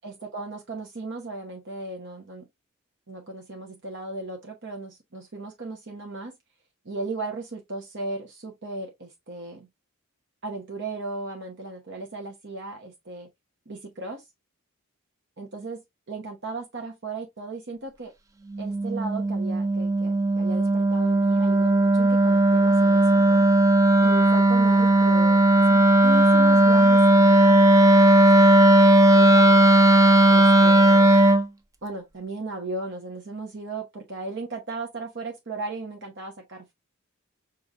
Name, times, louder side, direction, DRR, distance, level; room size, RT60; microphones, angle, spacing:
voice 1, 0.0-2.5 3.1-6.3 6.8-9.7 10.4-13.3 13.7-14.3 15.4-15.8 16.1-18.1 18.6-23.4 24.0-29.6 30.3-31.2 31.8-36.7, right 2 dB, 55° right, 0.9 m, -36 dB
Wind instrument woodwind instrument, 18.5-31.5, right 1 dB, 15° right, 0.3 m, -17 dB
5.2 x 3.0 x 2.4 m
head